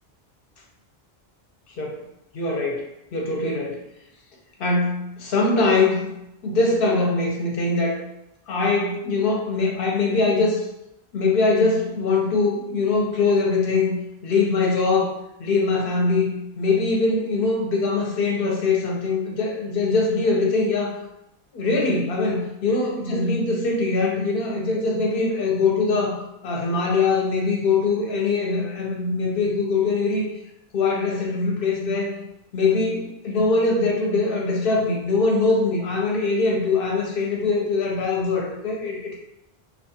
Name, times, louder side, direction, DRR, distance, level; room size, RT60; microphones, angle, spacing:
voice 1, 2.3-2.8 3.1-3.8 4.6-6.1 6.4-8.0 8.5-10.6 11.1-14.0 14.2-15.1 15.4-16.3 16.6-20.9 21.5-26.2 26.4-30.3 30.7-32.1 32.5-39.2, left 3 dB, 65° left, -1 dB, 0.7 m, -22 dB
2.3 x 2.3 x 2.7 m, 0.88 s
omnidirectional pair, 1.1 m